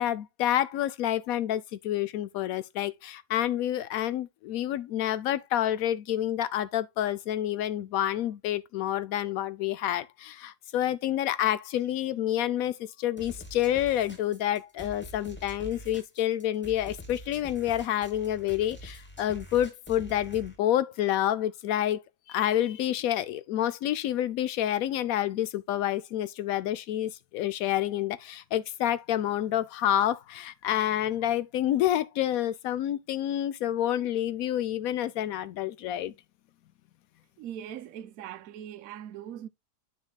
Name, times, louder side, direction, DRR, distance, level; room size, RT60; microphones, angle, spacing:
voice 1, 0.0-22.0 22.3-36.1, left 12 dB, 70° left, 0.9 m, -28 dB
sound 1, 13.2-20.6, equal, 10° left, 1.0 m, -45 dB
voice 2, 37.4-39.5, right 10 dB, 65° right, 1.0 m, -41 dB
9.6 x 5.6 x 2.3 m
omnidirectional pair, 1.7 m